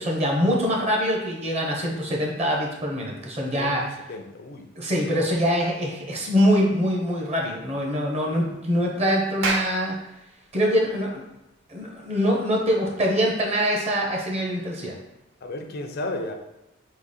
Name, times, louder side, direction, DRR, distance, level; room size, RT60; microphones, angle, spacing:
voice 1, 0.0-4.0 4.7-10.0 10.5-11.2 11.7-14.9, equal, 35° right, -1 dB, 0.9 m, -24 dB
voice 2, 3.6-4.7 15.4-16.3, left 2 dB, 55° left, 5 dB, 0.5 m, -34 dB
Clapping, 9.4-14.1, right 3 dB, 70° right, 0.6 m, -34 dB
3.9 x 2.9 x 4.1 m, 0.92 s
head